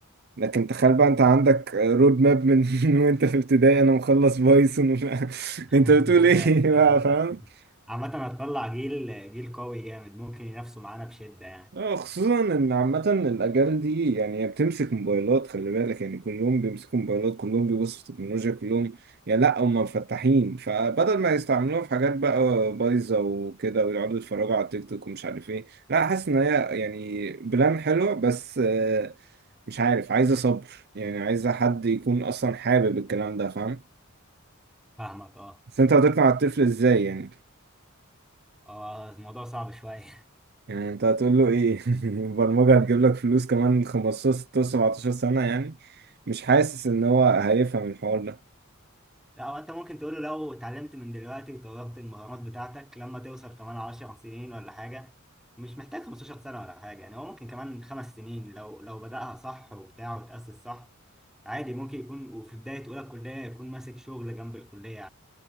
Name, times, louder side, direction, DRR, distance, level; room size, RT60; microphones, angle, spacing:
voice 1, 0.4-7.4 11.7-19.0 19.3-25.6 25.9-29.1 29.7-33.8 35.8-37.3 40.7-45.7 46.3-48.4, right 4 dB, 50° right, 0.6 m, -22 dB
voice 2, 5.7-7.2 7.9-11.7 35.0-35.6 38.7-40.2 49.4-55.1 55.6-60.9 61.5-65.1, equal, ahead, 5.4 m, -38 dB
head